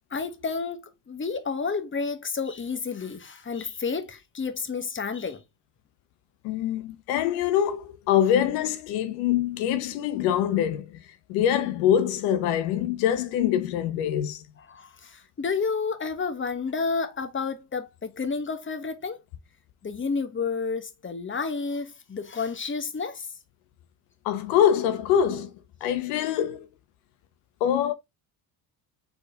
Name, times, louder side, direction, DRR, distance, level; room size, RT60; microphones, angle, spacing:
voice 1, 0.1-5.4 14.7-19.2 19.8-23.3, left 5 dB, 25° left, 1.1 m, -30 dB
voice 2, 6.4-11.0 11.3-14.4 24.2-25.5 25.8-26.7 27.6-27.9, left 10 dB, 85° left, 0.8 m, -24 dB
4.2 x 3.5 x 3.4 m
supercardioid pair, 65°, 48 cm